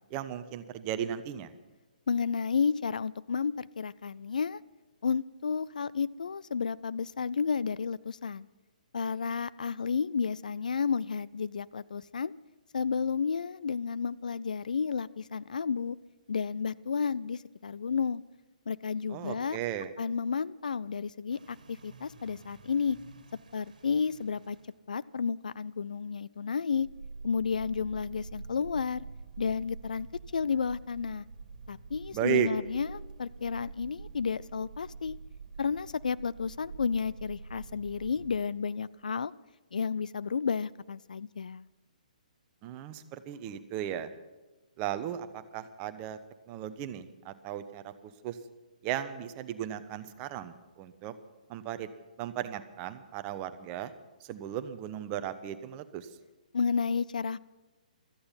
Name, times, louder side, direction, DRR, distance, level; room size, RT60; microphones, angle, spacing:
voice 1, 0.1-1.5 19.1-19.9 32.1-32.5 42.6-44.1 44.8-46.2 46.5-48.4 48.8-51.1 51.5-51.9 52.2-53.9 54.2-56.1, right 10 dB, 25° right, 11 dB, 1.0 m, -35 dB
voice 2, 2.1-4.6 5.0-8.5 8.9-12.3 12.7-16.0 16.3-18.2 18.7-19.6 20.0-23.0 23.5-24.6 24.9-26.9 27.2-29.0 29.4-30.1 30.3-31.3 31.7-35.2 35.6-39.3 39.7-41.6 56.5-57.4, left 6 dB, 65° left, 19 dB, 0.4 m, -31 dB
sound 1, 21.3-24.7 26.8-38.4, right 4 dB, 65° right, 2.0 m, -47 dB
17.0 x 13.5 x 5.7 m, 1.2 s
figure-of-eight pair, 130°, 5 cm